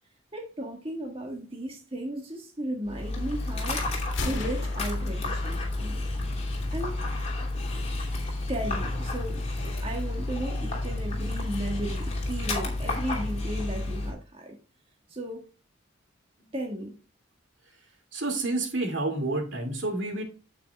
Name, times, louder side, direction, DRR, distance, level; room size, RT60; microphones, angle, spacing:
voice 1, 0.3-3.8 4.2-6.0 6.3-6.4 6.7-7.0 8.5-14.6 15.1-15.5 16.5-17.0, right 1 dB, 30° right, 1.7 m, -35 dB
Dog, 2.9-14.1, left 2 dB, 35° left, 2.8 m, -31 dB
Gunshot gunfire, 4.0-6.0, left 3 dB, 65° left, 2.1 m, -37 dB
voice 2, 18.1-20.2, right 2 dB, 65° right, 2.4 m, -29 dB
9.4 x 8.2 x 2.4 m
head